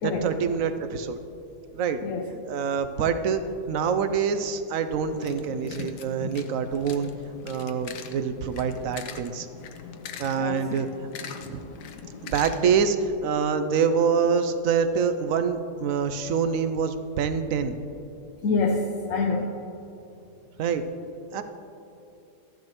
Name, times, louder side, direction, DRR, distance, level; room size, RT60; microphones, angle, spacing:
voice 1, 0.0-1.2 1.7-2.0 2.4-7.1 7.4-9.5 10.2-10.9 11.4-11.6 12.2-17.8 20.6-20.8 21.3-21.4, right 6 dB, 70° right, 9 dB, 0.9 m, -26 dB
sound 1, 5.1-12.9, left 7 dB, 80° left, 1.3 m, -41 dB
voice 2, 18.4-19.5, left 3 dB, 60° left, 0 dB, 1.1 m, -26 dB
13.5 x 10.5 x 3.0 m, 2.8 s
omnidirectional pair, 1.7 m